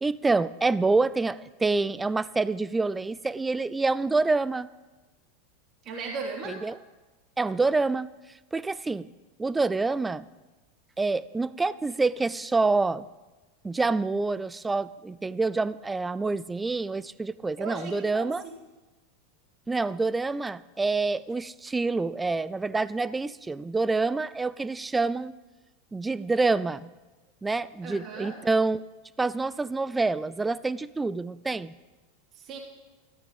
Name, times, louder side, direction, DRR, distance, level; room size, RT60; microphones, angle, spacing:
voice 1, 0.0-4.7 6.5-6.8 7.4-8.1 8.5-9.1 9.4-10.2 11.0-13.1 13.6-18.4 19.7-25.3 25.9-26.9 27.4-28.8 29.2-31.7, right 3 dB, 10° right, 18 dB, 0.4 m, -27 dB
voice 2, 5.8-6.6 17.6-18.5 27.8-28.4 32.3-32.6, right 4 dB, 35° right, -1 dB, 3.3 m, -37 dB
13.5 x 13.0 x 5.3 m, 1.2 s
figure-of-eight pair, 85°, 0 cm